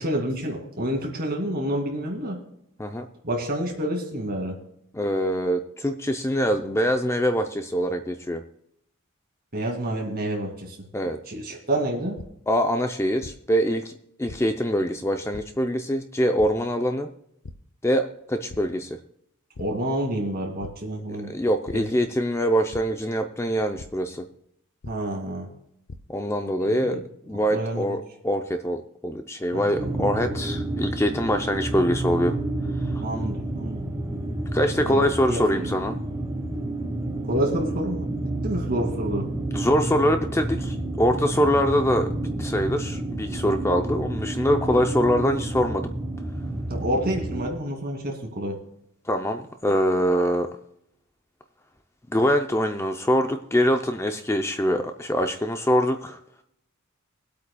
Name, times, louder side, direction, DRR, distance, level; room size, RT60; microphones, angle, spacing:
voice 1, 0.0-2.4 3.2-4.6 9.5-10.9 11.3-12.2 19.6-21.3 21.7-21.8 24.8-25.5 26.6-27.0 27.5-27.9 29.5-30.1 33.0-33.8 34.8-35.8 37.2-39.3 46.7-48.6, right 1 dB, 45° right, 1 dB, 2.4 m, -29 dB
voice 2, 4.9-8.4 10.9-11.2 12.5-13.9 14.2-17.1 17.8-19.0 21.2-24.3 26.1-32.4 32.8-32.9 34.5-36.0 39.5-45.9 49.1-50.5 52.1-56.2, equal, 10° left, 6 dB, 0.5 m, -24 dB
sound 1, 12.1-12.2 13.2-13.3 14.3-14.4 15.3-15.4 16.4-16.5 17.4-17.5 18.0-18.2 18.5-18.6 19.5-19.6 20.6-20.7 21.7-21.8 22.7-22.8 23.8-23.9 24.8-24.9 25.6-26.0, left 3 dB, 90° left, 0.7 m, -39 dB
sound 2, 29.8-47.5, right 2 dB, 15° right, 1.2 m, -30 dB
23.5 x 8.3 x 2.3 m, 0.76 s
head